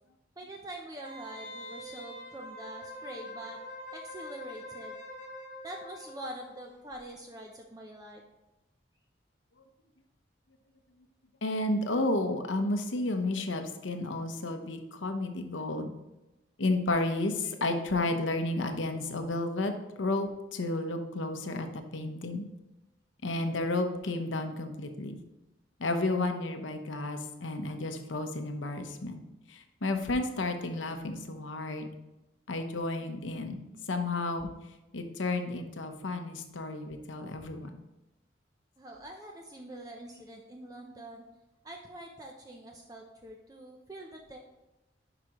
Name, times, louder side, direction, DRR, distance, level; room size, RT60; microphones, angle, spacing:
voice 1, 0.4-3.6 3.9-5.0 5.6-8.2 38.8-41.2 41.6-44.4, right 1 dB, 20° right, 1 dB, 0.5 m, -45 dB
Wind instrument woodwind instrument, 1.0-6.6 6.9-7.0, equal, 40° left, 1.0 m, -44 dB
voice 2, 11.4-15.9 16.6-19.7 20.0-22.4 23.2-25.2 25.8-29.2 29.5-31.9 32.5-33.6 33.9-34.5 34.9-37.8, left 2 dB, 85° left, 6 dB, 0.8 m, -32 dB
11.0 x 5.0 x 3.0 m, 0.99 s
head